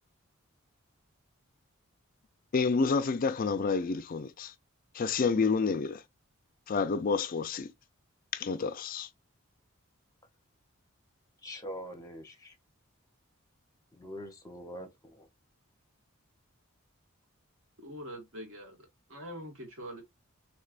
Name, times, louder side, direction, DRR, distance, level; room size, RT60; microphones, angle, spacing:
voice 1, 2.5-4.5 4.9-6.0 6.7-7.7 8.3-9.1, left 4 dB, 40° left, 0.4 m, -29 dB
voice 2, 11.4-12.6 13.9-15.3, equal, 15° left, 0.7 m, -44 dB
voice 3, 17.8-20.0, equal, 65° right, 1.6 m, -44 dB
3.2 x 3.2 x 2.4 m
head